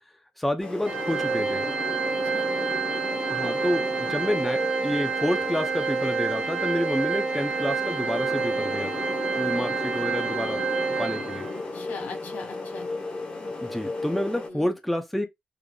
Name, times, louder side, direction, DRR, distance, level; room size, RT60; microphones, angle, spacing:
voice 1, 0.4-1.7 3.3-9.0 9.3-10.6 11.0-11.5 13.4-15.3, left 1 dB, 5° left, 0.5 m, -29 dB
sound 1, 0.6-14.5, left 3 dB, 35° left, 1.3 m, -35 dB
Organ, 0.8-11.6, right 5 dB, 35° right, 1.4 m, -28 dB
voice 2, 2.2-2.7 11.7-13.2 14.5-14.7, left 3 dB, 85° left, 2.0 m, -41 dB
3.8 x 3.2 x 2.2 m
cardioid pair, 125°, 3 cm